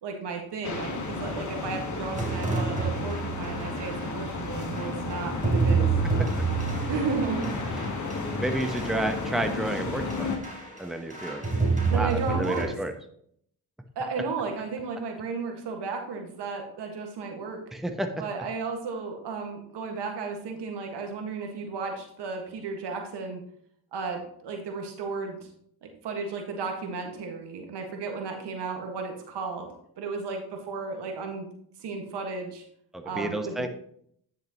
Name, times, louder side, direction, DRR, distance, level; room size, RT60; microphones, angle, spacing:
voice 1, 0.0-5.9 6.9-7.5 11.9-12.7 14.0-17.6 18.2-23.4 23.9-25.5 25.8-29.7 30.0-31.5 31.8-32.6 33.0-33.7, right 4 dB, 75° right, 3 dB, 1.8 m, -34 dB
sound 1, 0.6-10.4, left 3 dB, 45° left, 1.6 m, -32 dB
sound 2, 2.1-4.2 4.8-9.8 10.1-10.8 11.1-12.6, right 4 dB, 20° right, 3.2 m, -29 dB
voice 2, 8.4-10.3 10.8-11.4 11.9-12.9 17.7-18.2 32.9-33.7, right 1 dB, ahead, 5 dB, 1.0 m, -30 dB
10.0 x 6.6 x 3.0 m, 0.67 s
supercardioid pair, 65°, 42 cm